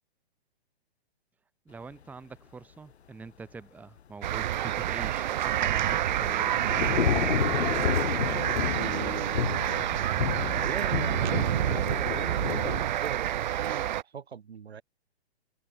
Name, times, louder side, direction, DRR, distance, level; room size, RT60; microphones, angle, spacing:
voice 1, 1.7-7.6, right 4 dB, 5° right, 2.0 m, -45 dB
sound 1, 4.2-14.0, right 12 dB, 45° right, 3.2 m, -28 dB
Thunder / Rain, 5.5-12.9, left 8 dB, 85° left, 1.3 m, -31 dB
voice 2, 8.7-9.6 10.6-14.8, right 7 dB, 75° right, 7.3 m, -40 dB
hypercardioid pair, 160°, 32 cm